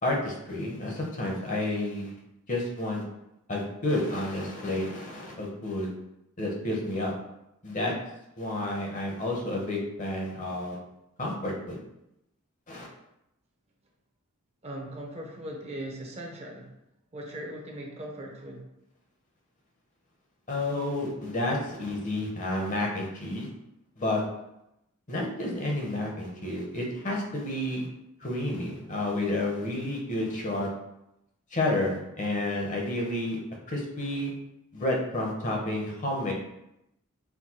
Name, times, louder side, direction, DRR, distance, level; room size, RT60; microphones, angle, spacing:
voice 1, 0.0-2.1 2.5-3.0 3.5-5.9 6.4-7.1 7.6-7.9 8.4-10.8 11.2-11.8 12.7-12.9 20.5-23.5 24.0-24.2 25.1-27.9 28.2-30.7 31.5-33.4 33.7-34.3 34.7-36.3, left 1 dB, 35° left, -1 dB, 0.8 m, -30 dB
voice 2, 14.6-16.7 17.1-18.6, right 1 dB, 30° right, 0 dB, 0.7 m, -39 dB
4.5 x 2.1 x 4.3 m, 0.86 s
head